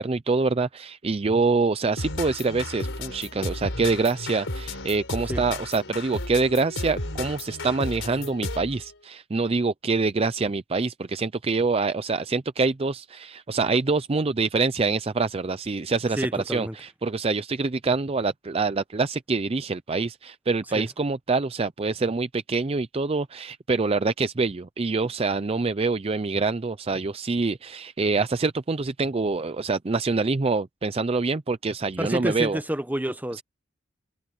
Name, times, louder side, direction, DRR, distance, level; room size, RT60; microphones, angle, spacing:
voice 1, 0.0-32.6 33.4-33.5, right 4 dB, 30° right, 0.5 m, -25 dB
sound 1, 2.0-8.8, left 2 dB, 70° left, 4.7 m, -33 dB
voice 2, 16.1-16.8 20.7-20.9 32.0-33.4, right 1 dB, 10° right, 1.0 m, -29 dB
head